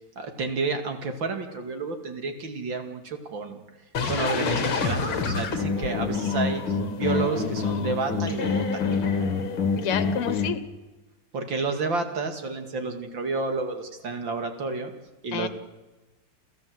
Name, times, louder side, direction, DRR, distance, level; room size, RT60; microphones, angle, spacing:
voice 1, 0.2-3.6 4.1-8.8 11.3-14.9 15.2-15.5, right 3 dB, 60° right, 6 dB, 3.0 m, -30 dB
sound 1, 3.9-10.5, left 4 dB, 70° left, 2.9 m, -26 dB
voice 2, 9.8-10.6 15.3-15.5, left 8 dB, 85° left, 13 dB, 2.2 m, -29 dB
29.5 x 14.5 x 7.9 m, 1.2 s
omnidirectional pair, 2.4 m